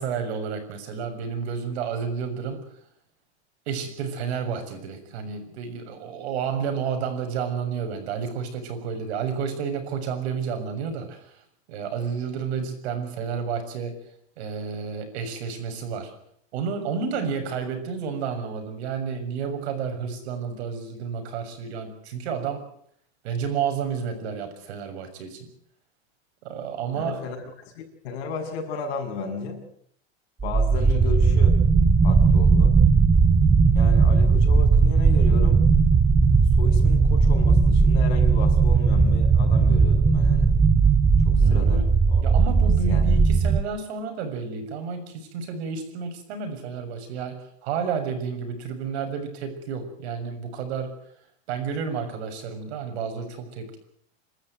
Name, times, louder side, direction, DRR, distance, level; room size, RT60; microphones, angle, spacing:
voice 1, 0.0-2.7 3.7-11.4 11.7-13.9 14.4-16.1 16.5-22.6 23.2-25.5 26.4-27.3 30.7-31.2 41.3-41.9 42.2-50.9 51.5-53.8, right 6 dB, 75° right, 7 dB, 7.0 m, -31 dB
voice 2, 26.9-27.4 27.7-29.6 30.4-31.5 32.0-32.8 33.7-35.7 36.1-36.2 36.5-40.6 41.2-42.3 42.7-43.0, left 6 dB, 70° left, 3 dB, 7.2 m, -34 dB
sound 1, 30.4-43.6, right 4 dB, 10° right, 0.9 m, -18 dB
27.0 x 13.5 x 9.4 m, 0.66 s
supercardioid pair, 150°, 33 cm